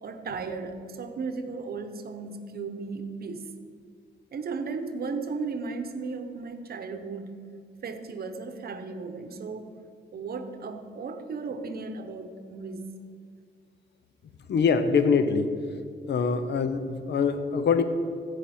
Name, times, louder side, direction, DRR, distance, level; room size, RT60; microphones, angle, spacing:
voice 1, 0.0-3.5 4.3-7.4 7.8-9.7 10.1-12.9, right 4 dB, 55° right, 8 dB, 0.9 m, -35 dB
voice 2, 14.5-15.6 16.1-17.8, left 5 dB, 65° left, 10 dB, 0.7 m, -24 dB
14.5 x 5.0 x 4.3 m, 2.2 s
cardioid pair, 110°, 19 cm